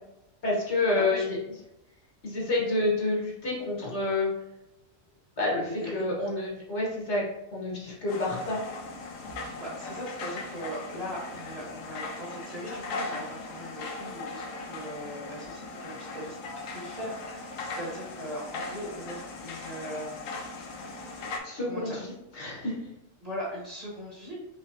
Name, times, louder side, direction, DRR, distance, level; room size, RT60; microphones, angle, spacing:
voice 1, 0.4-1.2 2.2-4.3 5.4-7.3 7.5-8.6 21.4-22.8, left 2 dB, 60° left, -4 dB, 1.5 m, -28 dB
voice 2, 0.9-1.2 5.6-6.1 9.5-16.3 16.7-21.4 21.7-22.0 23.2-24.4, equal, 30° right, -5 dB, 1.4 m, -40 dB
sound 1, 8.1-21.4, left 3 dB, 85° left, 1.1 m, -39 dB
5.0 x 3.1 x 2.7 m, 0.86 s
omnidirectional pair, 1.3 m